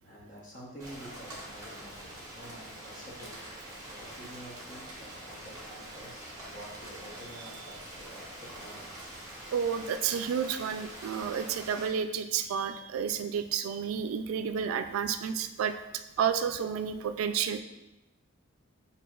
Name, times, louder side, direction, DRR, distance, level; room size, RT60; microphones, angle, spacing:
voice 1, 0.0-9.0, right 1 dB, 40° left, -3 dB, 0.9 m, -49 dB
Rain, 0.8-11.9, right 1 dB, 15° right, 1.0 m, -45 dB
voice 2, 9.5-15.7 16.2-17.6, right 7 dB, 85° right, 11 dB, 0.3 m, -31 dB
5.9 x 2.7 x 2.3 m, 0.98 s
head